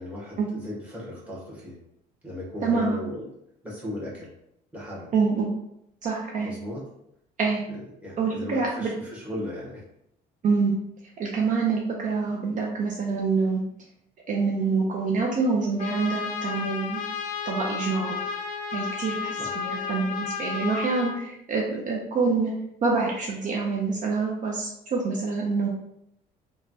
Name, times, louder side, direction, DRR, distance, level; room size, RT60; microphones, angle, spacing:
voice 1, 0.0-1.8 2.2-3.3 3.6-4.3 4.7-5.1 6.4-6.9 8.0-9.8 19.4-19.5, left 1 dB, 10° right, -6 dB, 1.1 m, -36 dB
voice 2, 2.6-3.0 5.1-5.5 6.0-6.5 7.4-7.6 8.2-8.9 10.4-10.8 11.2-13.6 14.3-17.0 17.5-18.1 18.7-22.5 22.8-25.7, right 4 dB, 50° right, -2 dB, 0.5 m, -26 dB
Trumpet, 15.8-21.2, left 6 dB, 50° left, 0.4 m, -32 dB
3.1 x 2.2 x 2.6 m, 0.79 s
cardioid pair, 110°, 17 cm